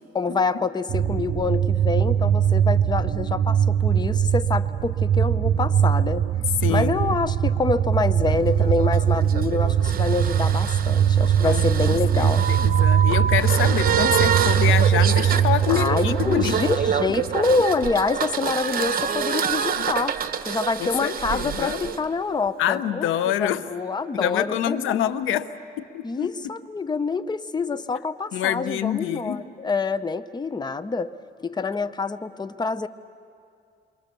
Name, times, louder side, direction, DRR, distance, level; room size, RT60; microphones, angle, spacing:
voice 1, 0.1-6.2 6.7-12.5 15.7-20.2 20.5-23.1 23.4-25.0 26.0-31.1 31.4-32.9, left 4 dB, 20° left, 13 dB, 0.7 m, -26 dB
sound 1, 0.9-17.7, right 9 dB, 65° right, 0.6 m, -21 dB
voice 2, 6.6-7.0 11.4-11.6 12.2-16.6 19.3-19.5 19.8-19.9 20.8-21.8 22.6-23.6 24.1-25.5 25.8-26.3 28.3-29.4, left 11 dB, 90° left, 14 dB, 0.8 m, -26 dB
sound 2, 8.3-22.0, right 7 dB, 45° right, 1.1 m, -27 dB
28.5 x 23.5 x 6.8 m, 2.4 s
cardioid pair, 90°, 20 cm